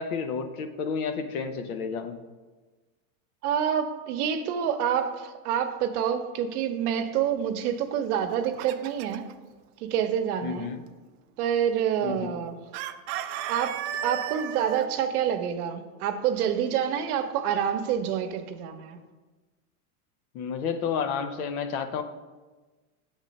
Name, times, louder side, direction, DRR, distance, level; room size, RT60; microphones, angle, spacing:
voice 1, 0.0-2.2 10.4-10.8 12.0-12.3 20.3-22.0, left 6 dB, 70° left, 8 dB, 0.8 m, -31 dB
voice 2, 3.4-9.3 9.8-10.7 11.4-12.6 13.5-19.0, right 8 dB, 80° right, 8 dB, 0.8 m, -27 dB
Chicken rooster, 8.1-9.3 12.7-14.9, right 10 dB, 50° right, 0.4 m, -34 dB
7.4 x 3.6 x 5.3 m, 1.3 s
supercardioid pair, 135°, 44 cm